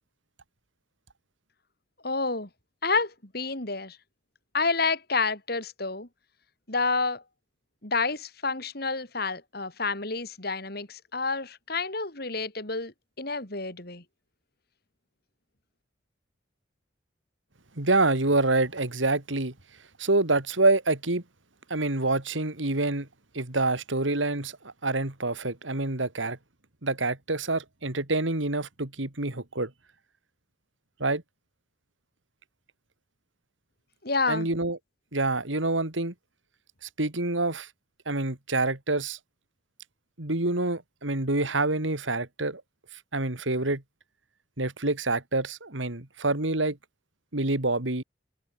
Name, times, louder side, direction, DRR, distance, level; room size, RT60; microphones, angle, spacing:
voice 1, 2.0-2.5 2.8-4.0 4.5-6.1 6.7-7.2 7.8-14.0 34.0-34.5, left 4 dB, 55° left, 3.8 m, -29 dB
voice 2, 17.8-19.5 20.0-21.2 21.7-23.1 23.3-26.4 26.8-29.7 31.0-31.2 34.3-34.8 35.1-36.1 36.8-37.7 38.1-39.2 40.2-42.6 43.1-43.8 44.6-46.8 47.3-48.0, right 2 dB, 80° right, 2.8 m, -27 dB
head